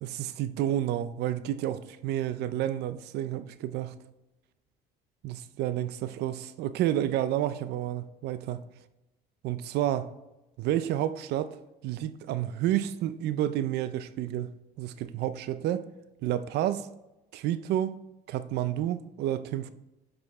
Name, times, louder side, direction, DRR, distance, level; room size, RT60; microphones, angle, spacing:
voice 1, 0.0-4.0 5.2-8.6 9.4-10.1 10.6-11.6 11.8-15.8 16.2-16.9 17.3-17.9 18.3-19.7, right 12 dB, 75° right, 0.5 m, -30 dB
7.5 x 5.0 x 3.5 m
cardioid pair, 110°, 17 cm